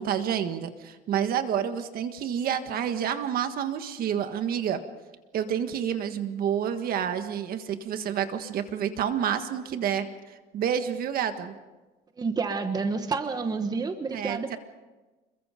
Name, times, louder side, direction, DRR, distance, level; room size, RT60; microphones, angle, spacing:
voice 1, 0.0-4.8 5.3-10.1 10.5-11.6 14.1-14.6, right 9 dB, 55° right, 9 dB, 1.6 m, -29 dB
voice 2, 12.2-14.6, right 4 dB, 20° right, 8 dB, 1.2 m, -29 dB
27.5 x 22.5 x 5.2 m, 1.2 s
cardioid pair, 145°, 18 cm